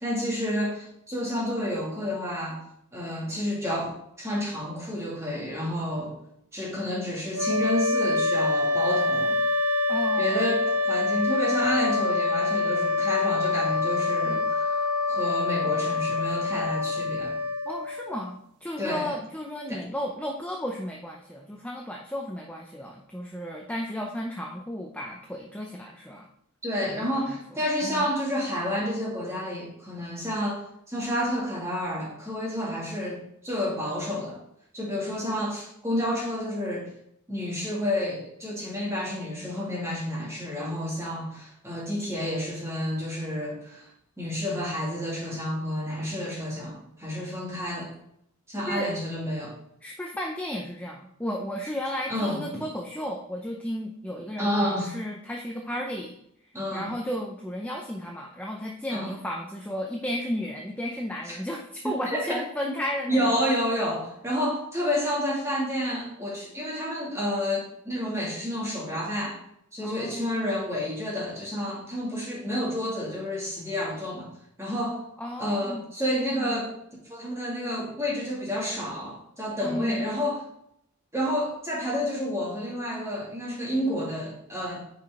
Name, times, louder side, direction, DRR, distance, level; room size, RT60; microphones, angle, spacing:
voice 1, 0.0-2.6 2.9-6.1 6.5-9.4 10.2-14.8 15.1-17.3 18.8-19.1 19.7-19.8 26.6-30.6 30.9-34.4 34.7-36.9 37.3-43.9 44.2-47.9 48.5-49.5 52.1-52.6 54.4-54.9 56.5-56.9 58.9-59.1 61.3-61.4 61.8-62.4 63.1-69.4 69.7-74.3 74.6-75.0 75.4-76.7 77.1-80.4 81.1-84.8, equal, 10° right, -4 dB, 2.3 m, -30 dB
sound 1, 7.3-18.3, left 3 dB, 85° right, 0.7 m, -26 dB
voice 2, 9.9-10.5 17.6-26.3 26.9-28.1 48.7-48.9 49.8-56.1 56.7-63.4 69.8-70.4 75.2-75.8 76.3-76.6 79.6-80.1, equal, 5° left, 0 dB, 0.5 m, -34 dB
9.3 x 4.9 x 3.6 m, 0.75 s
head